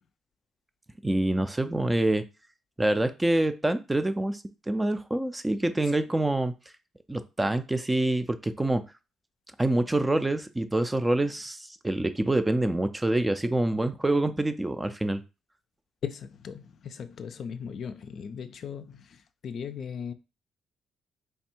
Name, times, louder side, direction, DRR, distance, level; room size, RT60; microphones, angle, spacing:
voice 1, 1.0-2.2 2.8-6.5 7.1-8.8 9.6-15.2, right 1 dB, 15° right, 0.4 m, -26 dB
voice 2, 16.0-20.1, left 7 dB, 60° left, 0.4 m, -38 dB
3.3 x 2.2 x 4.4 m
cardioid pair, 90°, 0 cm